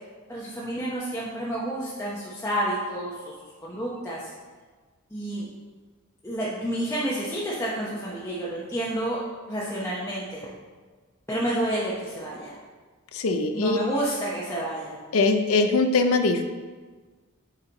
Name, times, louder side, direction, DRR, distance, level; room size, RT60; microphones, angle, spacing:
voice 1, 0.3-3.1 3.6-4.2 5.1-5.5 6.2-9.2 9.5-10.5 11.3-12.6 13.5-15.0, right 1 dB, 10° left, -7 dB, 0.8 m, -29 dB
voice 2, 13.1-13.8 15.1-16.4, left 3 dB, 75° left, 6 dB, 0.5 m, -22 dB
6.8 x 4.5 x 3.9 m, 1.4 s
head